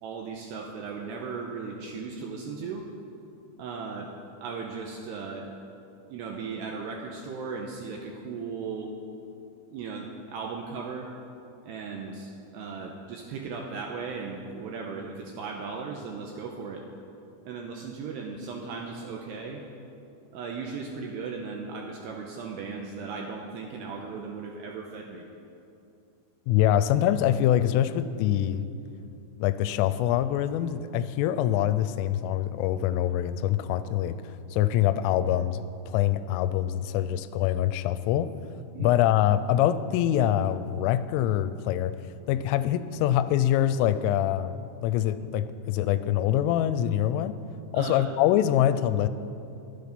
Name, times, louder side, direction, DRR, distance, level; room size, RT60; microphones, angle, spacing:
voice 1, 0.0-2.9 3.6-4.1 4.4-5.5 6.1-8.9 9.7-11.1 11.6-16.8 17.4-19.6 20.3-25.3 38.7-39.0 47.7-48.1, right 5 dB, 80° right, 1 dB, 2.5 m, -37 dB
voice 2, 26.5-28.6 29.4-38.3 38.8-41.9 42.3-47.3 47.7-49.1, left 11 dB, 85° left, 13 dB, 3.1 m, -24 dB
23.0 x 8.2 x 5.2 m, 2.7 s
omnidirectional pair, 5.7 m